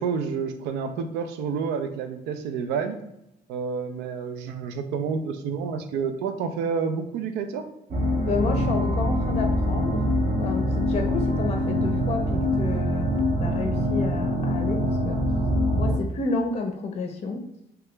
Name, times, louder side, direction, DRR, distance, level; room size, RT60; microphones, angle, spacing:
voice 1, 0.0-3.0 3.5-7.7, right 6 dB, 90° right, 7 dB, 0.4 m, -29 dB
sound 1, 7.9-16.0, equal, 45° right, 0.6 m, -24 dB
voice 2, 8.2-13.1 13.4-15.2 15.7-17.5, left 3 dB, 40° left, 4 dB, 0.5 m, -30 dB
2.8 x 2.3 x 3.2 m, 0.82 s
cardioid pair, 110°, 17 cm